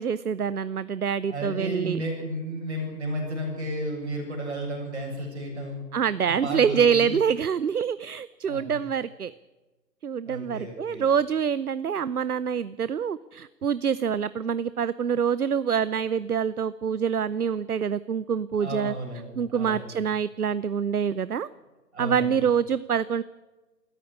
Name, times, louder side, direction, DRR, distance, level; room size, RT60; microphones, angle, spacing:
voice 1, 0.0-2.0 5.9-9.3 10.0-18.9 19.4-21.5 22.0-23.2, right 7 dB, 65° right, 17 dB, 0.7 m, -26 dB
voice 2, 1.3-5.8 6.2-7.1 8.4-8.8 10.3-11.1 18.6-20.0 21.9-22.4, right 1 dB, 40° right, 0 dB, 7.7 m, -33 dB
19.0 x 14.5 x 9.7 m, 1.2 s
figure-of-eight pair, 175°, 50 cm